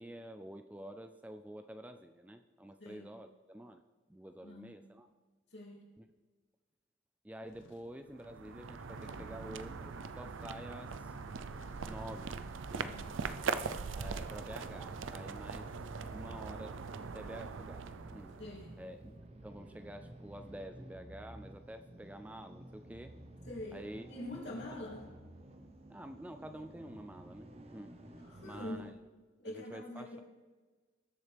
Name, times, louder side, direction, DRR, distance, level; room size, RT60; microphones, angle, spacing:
voice 1, 0.0-3.8 4.1-5.1 6.0-6.1 7.2-11.2 11.9-12.4 12.7-12.9 13.9-15.7 16.1-16.8 17.1-18.4 18.8-19.1 19.4-23.1 23.7-24.1 24.7-24.8 25.9-27.9 28.4-28.9 29.4-30.2, right 1 dB, 5° right, 7 dB, 0.3 m, -48 dB
voice 2, 2.8-3.1 4.4-4.7 5.5-5.9 12.7-13.1 18.4-18.8 23.5-25.1 28.2-28.8 29.4-30.2, left 1 dB, 60° left, -2 dB, 2.8 m, -45 dB
sound 1, 7.5-8.0 8.8-9.6 11.3-12.4, left 2 dB, 85° left, 0.9 m, -59 dB
sound 2, 8.1-18.8, right 5 dB, 85° right, 0.5 m, -41 dB
sound 3, 9.5-29.0, right 1 dB, 30° right, 0.9 m, -53 dB
19.5 x 7.2 x 3.4 m, 1.3 s
head